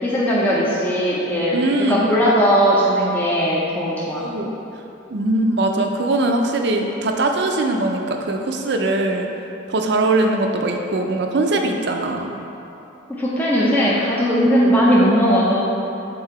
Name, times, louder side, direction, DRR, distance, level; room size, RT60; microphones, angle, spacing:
voice 1, 0.0-4.2 13.1-15.6, equal, 10° left, -7 dB, 0.6 m, -18 dB
voice 2, 1.5-2.1 4.1-4.5 5.1-9.3 9.7-12.3, right 2 dB, 55° right, 3 dB, 0.5 m, -21 dB
6.7 x 3.7 x 4.4 m, 2.9 s
head